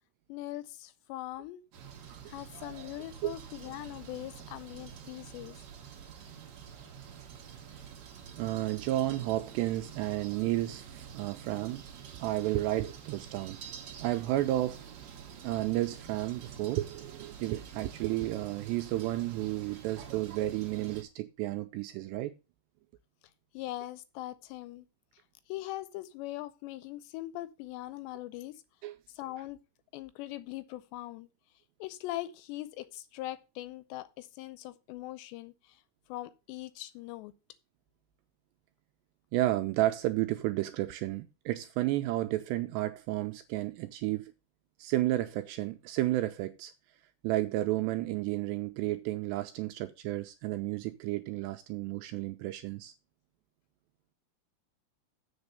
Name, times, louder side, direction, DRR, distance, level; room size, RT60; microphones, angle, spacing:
voice 1, 0.3-1.6 2.3-5.6 23.5-24.9 25.5-28.6 29.1-29.6 29.9-31.3 31.8-35.8 36.1-37.3, left 15 dB, 80° left, 2.6 m, -41 dB
sound 1, 1.7-21.0, right 8 dB, 65° right, 1.7 m, -48 dB
voice 2, 8.4-11.8 12.2-13.6 14.0-14.8 15.4-22.3 28.8-29.0 39.3-44.3 44.8-46.7 47.2-52.9, right 16 dB, 85° right, 2.5 m, -32 dB
8.0 x 5.5 x 6.7 m
omnidirectional pair, 5.4 m